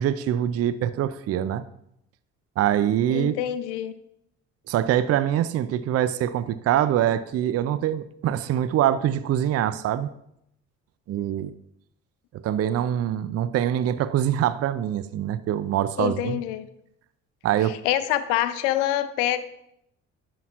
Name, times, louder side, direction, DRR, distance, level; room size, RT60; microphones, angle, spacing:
voice 1, 0.0-1.6 2.6-3.3 4.7-10.1 11.1-11.5 12.4-16.4 17.4-17.8, right 11 dB, 40° right, 14 dB, 0.5 m, -24 dB
voice 2, 3.1-3.9 16.0-16.7 17.6-19.4, left 12 dB, 75° left, 13 dB, 0.6 m, -26 dB
10.5 x 5.9 x 2.5 m, 0.76 s
hypercardioid pair, 50°, 37 cm